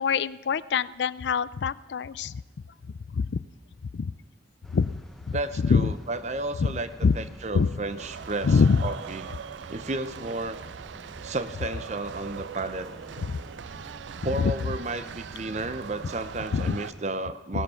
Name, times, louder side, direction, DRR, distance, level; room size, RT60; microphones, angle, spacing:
voice 1, 0.0-2.4 3.1-3.4 3.9-4.1 4.7-4.9 5.3-5.4 5.6-5.9 6.6-6.7 7.0-7.2 7.5-7.7 8.4-8.8 13.3-13.4 14.4-14.5 16.5-16.8, left 5 dB, 75° left, 18 dB, 0.4 m, -24 dB
sound 1, 4.6-17.0, equal, ahead, 0.8 m, -49 dB
voice 2, 5.3-6.9 7.1-9.3 9.7-10.6 11.2-12.9 14.2-17.6, right 2 dB, 40° right, 12 dB, 0.7 m, -32 dB
sound 2, 8.0-16.9, right 7 dB, 85° right, 0.4 m, -41 dB
17.0 x 12.0 x 5.7 m, 1.1 s
head